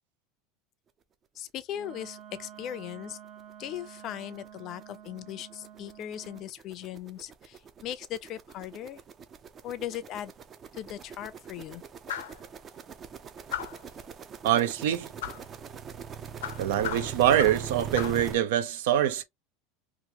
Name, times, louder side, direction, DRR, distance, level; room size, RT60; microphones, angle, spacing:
voice 1, 1.4-3.2 3.6-9.0 9.6-10.3 10.7-11.8, left 11 dB, 45° left, 0.5 m, -38 dB
Wind instrument woodwind instrument, 1.7-6.5, right 10 dB, 50° right, 0.8 m, -49 dB
sound 1, 2.9-3.0 3.4-3.5 3.8-18.4, right 7 dB, 30° right, 0.5 m, -42 dB
sound 2, 12.1-12.4 13.5-13.9 15.2-15.5 16.4-17.7 18.0-18.3, left 10 dB, 90° left, 0.6 m, -36 dB
voice 2, 14.4-15.1 16.6-19.2, right 11 dB, 80° right, 0.6 m, -24 dB
3.0 x 2.5 x 2.8 m
supercardioid pair, 120°, 0 cm